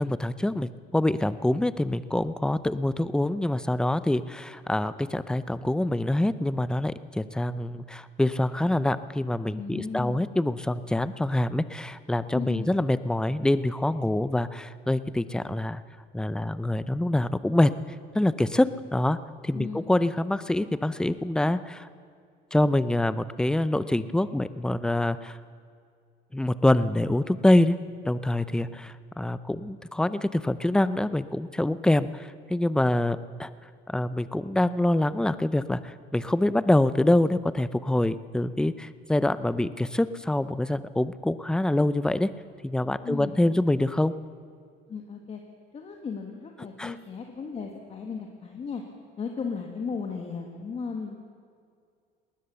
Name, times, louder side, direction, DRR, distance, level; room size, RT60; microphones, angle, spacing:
voice 1, 0.0-15.8 16.1-17.7 18.1-19.2 19.4-21.9 22.5-25.4 26.3-27.8 28.0-33.5 33.9-42.3 42.6-44.1 46.8-46.9, left 1 dB, 5° left, 14 dB, 0.6 m, -25 dB
voice 2, 9.5-10.2 12.3-12.7 19.5-19.9 43.0-43.8 44.9-45.4 45.7-48.8 49.2-51.2, left 5 dB, 35° left, 2 dB, 1.7 m, -35 dB
19.5 x 19.0 x 6.9 m, 2.3 s
cardioid pair, 130°, 19 cm